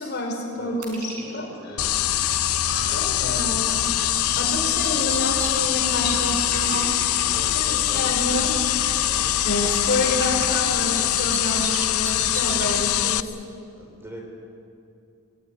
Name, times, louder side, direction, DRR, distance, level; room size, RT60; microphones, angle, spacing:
voice 1, 0.0-1.9 2.9-6.9 7.5-8.5 9.4-13.2, left 1 dB, 50° left, 1 dB, 5.0 m, -28 dB
sound 1, 0.8-2.5 2.9-3.0 3.3-5.1 5.3-5.4 5.9-7.5 8.2-10.5, right 2 dB, 75° right, 5.9 m, -41 dB
voice 2, 1.2-1.9 7.3-8.3 9.0-9.4 9.9-10.0 13.7-14.2, right 1 dB, 10° right, 1 dB, 3.6 m, -42 dB
sound 2, 1.8-13.2, left 12 dB, 75° left, 0.6 m, -23 dB
Bird, 2.6-4.2 4.5-7.9 8.2-10.3 10.6-12.8, right 5 dB, 35° right, 1.4 m, -39 dB
22.0 x 19.0 x 9.9 m, 2.5 s
head